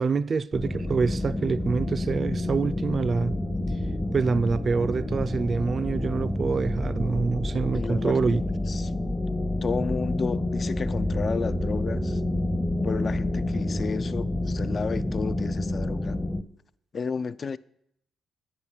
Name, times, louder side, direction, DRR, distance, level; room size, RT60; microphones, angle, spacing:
voice 1, 0.0-3.4 4.1-8.4, right 4 dB, 40° right, 0.4 m, -26 dB
sound 1, 0.5-16.4, left 1 dB, 10° left, 0.7 m, -28 dB
voice 2, 7.7-8.4 8.7-8.9 9.6-12.2 12.8-16.3 16.9-17.6, left 5 dB, 40° left, 0.4 m, -32 dB
9.7 x 5.2 x 7.2 m
cardioid pair, 90°, 0 cm